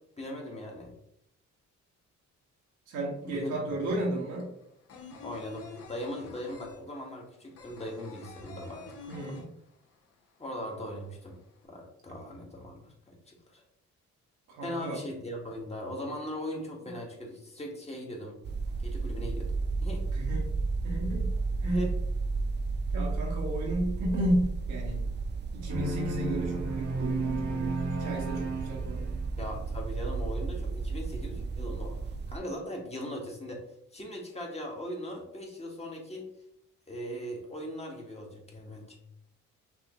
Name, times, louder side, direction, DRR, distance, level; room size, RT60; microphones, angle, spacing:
voice 1, 0.2-0.9 3.2-3.8 5.2-9.4 10.4-11.4 11.6-13.6 14.6-18.4 18.8-19.5 19.8-20.0 21.7-21.9 29.4-32.0 32.3-33.6 33.9-36.3 36.9-39.0, equal, 20° left, -1 dB, 1.4 m, -39 dB
voice 2, 2.9-4.5 9.1-9.5 14.5-15.0 16.8-16.9 20.1-20.5 20.8-21.3 21.6-21.8 22.9-25.0 25.5-29.1, right 1 dB, 85° right, -2 dB, 1.7 m, -33 dB
sound 1, 3.2-3.3 3.5-10.1 10.4-10.5 10.8-11.6, left 4 dB, 50° left, 1.1 m, -47 dB
sound 2, 18.4-32.4, right 4 dB, 35° right, 0.4 m, -33 dB
sound 3, 25.7-29.5, right 3 dB, 70° right, 1.1 m, -33 dB
6.0 x 2.9 x 3.0 m, 0.74 s
cardioid pair, 90°, 30 cm